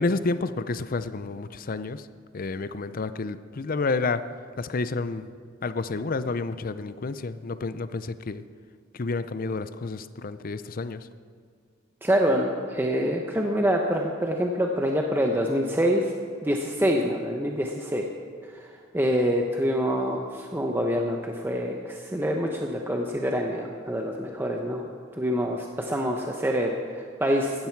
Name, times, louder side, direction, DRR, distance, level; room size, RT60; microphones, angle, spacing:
voice 1, 0.0-2.0 2.3-4.3 4.6-5.3 5.6-8.4 8.9-11.0, left 3 dB, 45° left, 13 dB, 0.5 m, -30 dB
voice 2, 12.0-16.1 16.4-18.1 18.4-24.9 25.1-27.7, equal, 10° right, 1 dB, 0.8 m, -26 dB
16.5 x 13.0 x 4.6 m, 2.1 s
head